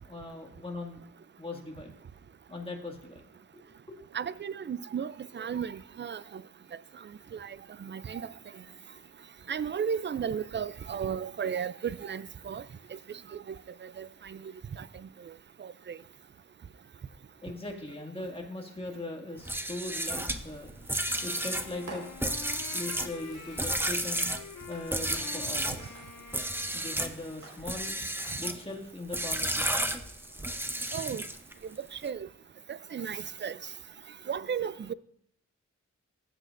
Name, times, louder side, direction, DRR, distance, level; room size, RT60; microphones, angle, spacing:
voice 1, 0.0-1.0 1.4-1.9 2.5-3.3 3.9-4.0 17.4-20.7 21.2-22.0 22.7-24.3 24.7-26.0 26.7-27.9 28.4-29.7, left 2 dB, 20° left, 2.1 m, -40 dB
voice 2, 4.1-6.4 7.3-7.6 7.8-8.3 9.5-12.6 13.3-13.6 14.0-14.5 15.6-16.0 30.9-31.2 31.9-32.3 32.7-33.6 34.3-34.9, right 7 dB, 35° right, 0.4 m, -34 dB
sound 1, 19.4-25.8 26.3-27.2 27.6-28.6 29.1-31.5, right 1 dB, 5° right, 0.7 m, -32 dB
Fireworks, 20.3-20.8 21.9-26.9 27.4-28.8, right 3 dB, 70° right, 4.3 m, -51 dB
Wind instrument woodwind instrument, 21.1-27.3, left 8 dB, 80° left, 0.7 m, -47 dB
15.5 x 8.0 x 2.6 m
wide cardioid pair, 65°, 31 cm